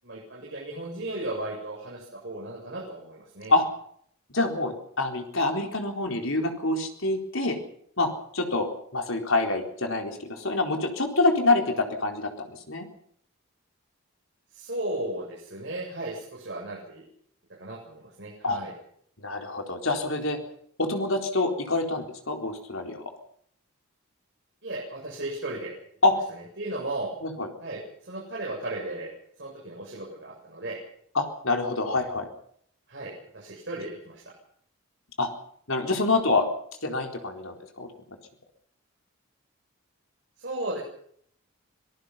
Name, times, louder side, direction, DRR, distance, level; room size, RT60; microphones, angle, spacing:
voice 1, 0.0-3.5 14.5-17.0 17.6-18.7 24.6-25.7 26.6-27.1 27.6-29.1 29.4-30.8 32.9-34.2 40.4-40.8, right 1 dB, 55° right, -3 dB, 7.5 m, -35 dB
voice 2, 4.3-7.6 8.0-12.9 18.4-18.6 19.2-20.4 20.8-23.0 26.0-26.1 27.2-27.5 31.1-32.3 35.2-35.3 35.7-36.5 36.8-37.9, left 2 dB, 65° left, 3 dB, 4.1 m, -26 dB
26.0 x 19.0 x 5.7 m, 0.64 s
head